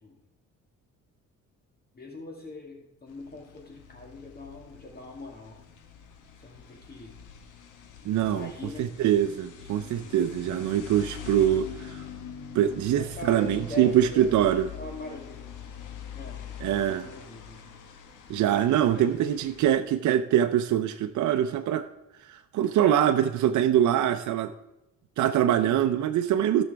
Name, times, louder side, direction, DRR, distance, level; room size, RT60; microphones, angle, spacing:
voice 1, 1.9-5.6 6.4-7.1 8.3-8.9 12.9-14.4 14.7-15.5 16.1-17.7 18.9-19.1 20.0-20.1 25.5-25.8, left 2 dB, 30° left, 2.0 m, -42 dB
sound 1, 3.1-19.8, left 8 dB, 85° left, 1.6 m, -44 dB
voice 2, 8.0-8.5 8.8-12.0 12.5-14.7 16.6-17.1 18.3-21.9 22.3-24.5 25.2-26.6, right 10 dB, 70° right, 0.6 m, -24 dB
16.5 x 6.3 x 3.4 m
cardioid pair, 90°, 30 cm